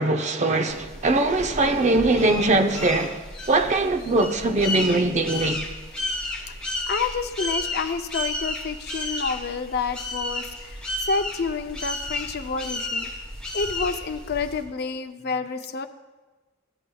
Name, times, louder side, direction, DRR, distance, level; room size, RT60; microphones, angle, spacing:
voice 1, 0.0-3.2 3.5-5.6, right 2 dB, 35° right, 0.6 m, -21 dB
sound 1, 0.7-14.6, left 1 dB, 5° left, 2.5 m, -32 dB
voice 2, 6.9-13.1 13.5-15.9, left 4 dB, 50° left, 0.5 m, -29 dB
16.0 x 8.6 x 2.3 m
head